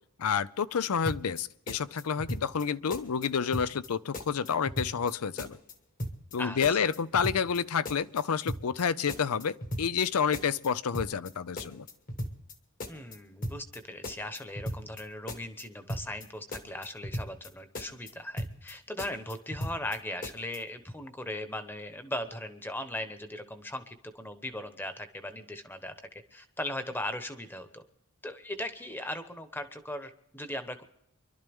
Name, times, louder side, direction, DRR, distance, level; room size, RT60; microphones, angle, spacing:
voice 1, 0.2-5.6 6.3-11.9, left 6 dB, 90° left, 17 dB, 0.5 m, -29 dB
sound 1, 1.1-1.4 1.7-2.6 2.9-3.3 3.5-3.9 4.1-5.1 5.4-5.7 6.0-6.4 6.6-7.6 7.9-8.2 8.5-8.8 9.1-10.1 10.3-10.7 10.9-11.3 11.6-12.5 12.8-13.2 13.4-13.8 14.0-15.0 15.3-15.6 15.9-16.3 16.5-17.5 17.8-18.1 18.4-18.7 19.0-20.0 20.2-20.6, equal, 40° left, 1.5 m, -37 dB
voice 2, 6.4-6.8 12.9-27.8 28.2-30.8, left 1 dB, 10° left, 8 dB, 1.0 m, -38 dB
25.0 x 12.0 x 3.6 m, 0.77 s
head